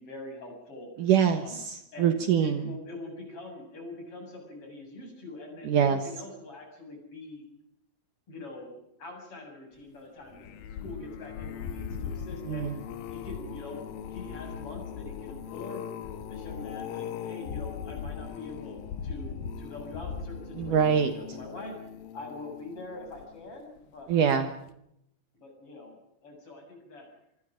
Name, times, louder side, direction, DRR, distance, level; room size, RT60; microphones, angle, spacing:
voice 1, 0.0-0.9 1.3-1.6 1.9-7.4 8.3-10.6 10.8-12.7 13.1-15.9 16.3-21.8 22.1-24.1 25.4-26.0 26.2-27.1, left 2 dB, 35° left, 2 dB, 8.1 m, -44 dB
voice 2, 1.0-2.7 5.6-6.0 12.5-12.8 20.6-21.1 24.1-24.5, right 8 dB, 65° right, 8 dB, 2.7 m, -24 dB
sound 1, 10.2-23.6 24.1-24.4 24.7-24.8, left 7 dB, 75° left, 3.1 m, -39 dB
25.5 x 25.0 x 5.2 m, 0.76 s
omnidirectional pair, 4.3 m